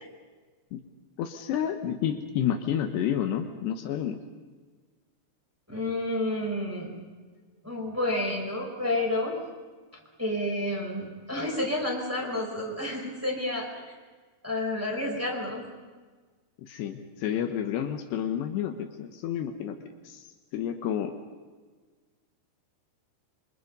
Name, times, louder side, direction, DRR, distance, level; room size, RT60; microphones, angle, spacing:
voice 1, 1.2-4.2 16.6-19.8 20.0-21.2, left 9 dB, 75° left, 6 dB, 3.2 m, -30 dB
voice 2, 5.7-7.0 7.6-9.4 10.2-13.7 14.4-15.7, left 1 dB, 5° right, -2 dB, 4.5 m, -30 dB
27.5 x 25.0 x 5.4 m, 1.4 s
omnidirectional pair, 5.1 m